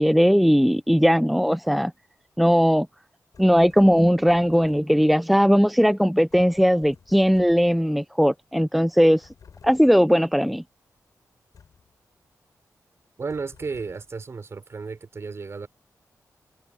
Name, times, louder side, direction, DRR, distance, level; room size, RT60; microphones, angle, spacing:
voice 1, 0.0-1.9 2.4-2.9 3.4-9.3 9.6-10.6, equal, ahead, 0.5 m, -19 dB
sound 1, 3.3-5.1 6.3-7.9 9.2-10.1 11.5-12.0 13.3-14.2, left 6 dB, 70° left, 7.5 m, -52 dB
voice 2, 13.2-15.7, right 4 dB, 45° right, 6.5 m, -33 dB
wide cardioid pair, 115°, 6 cm